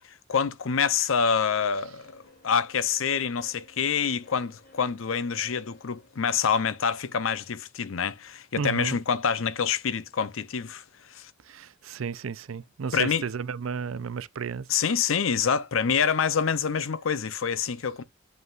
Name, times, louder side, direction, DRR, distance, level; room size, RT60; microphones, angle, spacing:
voice 1, 0.3-10.8 11.1-11.3 12.9-13.2 14.7-18.0, left 6 dB, 80° left, 0.6 m, -26 dB
sound 1, 1.6-7.3, left 2 dB, 55° left, 3.0 m, -56 dB
voice 2, 8.6-9.0 11.5-14.7, right 6 dB, 85° right, 0.5 m, -33 dB
7.6 x 5.4 x 2.4 m
head